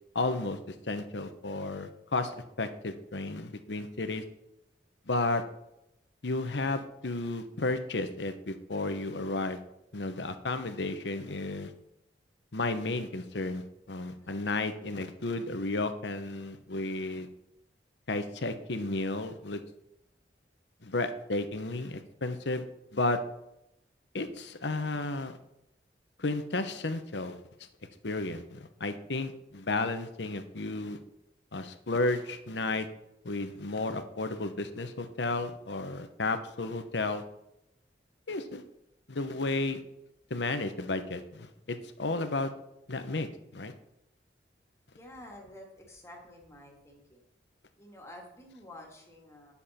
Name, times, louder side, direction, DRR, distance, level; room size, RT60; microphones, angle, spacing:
voice 1, 0.1-4.2 5.1-5.4 6.2-9.6 9.9-11.7 12.5-17.3 18.1-19.6 20.8-22.6 22.9-23.2 24.1-25.4 26.2-27.4 28.0-31.0 31.5-32.9 33.2-37.2 38.3-38.6 39.1-39.8 40.3-42.5 42.9-43.7, left 2 dB, 80° left, 9 dB, 1.0 m, -33 dB
voice 2, 44.9-47.2 47.7-49.5, left 1 dB, 15° left, 0 dB, 2.0 m, -50 dB
10.5 x 7.1 x 4.3 m, 0.83 s
head